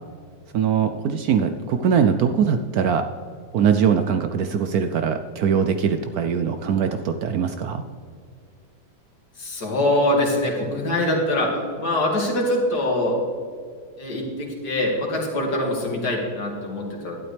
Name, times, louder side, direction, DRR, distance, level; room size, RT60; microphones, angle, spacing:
voice 1, 0.5-3.1 3.5-7.8, right 7 dB, 80° right, 8 dB, 0.8 m, -21 dB
voice 2, 9.4-13.2 14.0-17.2, left 1 dB, 55° left, 0 dB, 2.5 m, -23 dB
12.0 x 11.5 x 3.3 m, 2.1 s
omnidirectional pair, 2.1 m